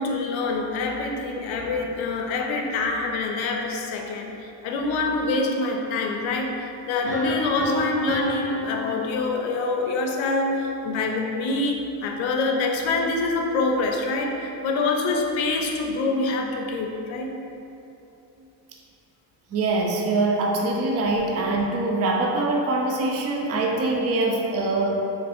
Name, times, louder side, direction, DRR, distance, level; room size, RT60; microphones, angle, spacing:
voice 1, 0.0-17.4, left 3 dB, 75° left, 2 dB, 0.5 m, -26 dB
sound 1, 7.1-10.0, left 3 dB, 65° right, 1.2 m, -31 dB
voice 2, 19.5-24.9, right 2 dB, 35° right, 0 dB, 0.4 m, -23 dB
3.3 x 2.6 x 2.4 m, 2.8 s
cardioid pair, 85°, 47 cm